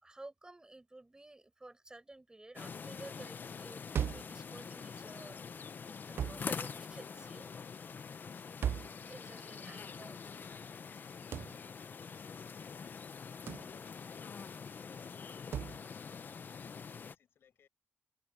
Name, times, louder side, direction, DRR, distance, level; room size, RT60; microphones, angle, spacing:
voice 1, 0.0-5.4 6.1-7.5 9.1-10.2, right 2 dB, 20° right, 5.4 m, -52 dB
sound 1, 2.6-17.2, left 6 dB, 55° left, 0.8 m, -45 dB
sound 2, 3.9-4.4 6.2-6.5 8.6-9.0 11.3-11.6 13.5-13.7 15.5-15.8, right 9 dB, 75° right, 0.3 m, -36 dB
voice 2, 7.9-8.7 9.6-17.7, left 8 dB, 80° left, 5.5 m, -67 dB
cardioid pair, 80°, 4 cm